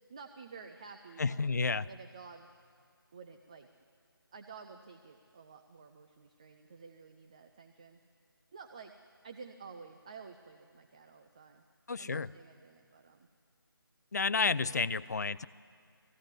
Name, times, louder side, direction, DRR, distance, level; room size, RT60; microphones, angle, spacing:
voice 1, 0.1-1.4 1.8-2.5 3.1-3.7 4.3-8.0 8.5-8.9 9.2-11.6 12.0-13.3 14.5-14.8, right 5 dB, 15° right, 6 dB, 0.4 m, -51 dB
voice 2, 1.2-1.9 11.9-12.3 14.1-15.5, left 4 dB, 45° left, 16 dB, 0.5 m, -31 dB
20.0 x 15.0 x 9.7 m, 2.3 s
figure-of-eight pair, 155°, 12 cm